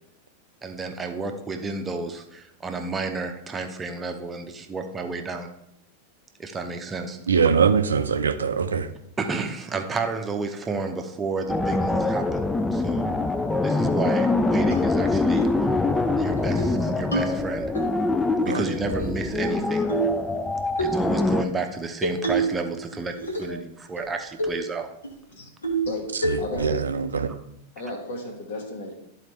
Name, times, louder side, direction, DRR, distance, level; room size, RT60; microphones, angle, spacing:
voice 1, 0.6-5.5 6.4-7.2 9.2-13.1 13.6-15.5 16.2-17.7 18.4-19.8 20.8-24.9, right 4 dB, 15° right, 0.8 m, -31 dB
voice 2, 7.3-8.9 18.5-18.6 26.2-27.3, right 6 dB, 70° right, 0.5 m, -22 dB
sound 1, 11.5-21.4, left 2 dB, 10° left, 0.4 m, -24 dB
sound 2, 14.7-14.8 15.4-15.6 15.9-16.0 16.4-16.7 17.1-17.9 18.9-19.5 19.9-20.2 20.8-21.0 22.0-22.6 22.9-23.6 24.0-24.1 24.4-24.6 25.0-25.1 25.6-25.9 26.2-26.7, right 2 dB, 80° left, 1.5 m, -27 dB
voice 3, 25.8-27.0 27.7-28.9, left 2 dB, 55° left, 1.4 m, -34 dB
12.0 x 4.1 x 3.1 m
figure-of-eight pair, 90°, 0 cm